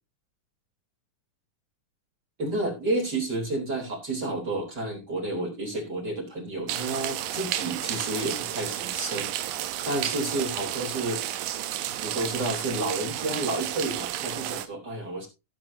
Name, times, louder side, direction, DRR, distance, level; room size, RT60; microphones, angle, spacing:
voice 1, 2.4-11.2 12.0-15.3, right 2 dB, 30° right, 0 dB, 4.0 m, -31 dB
sound 1, 6.7-14.7, right 13 dB, 90° right, 2.6 m, -32 dB
17.0 x 7.9 x 2.7 m, 0.26 s
omnidirectional pair, 3.9 m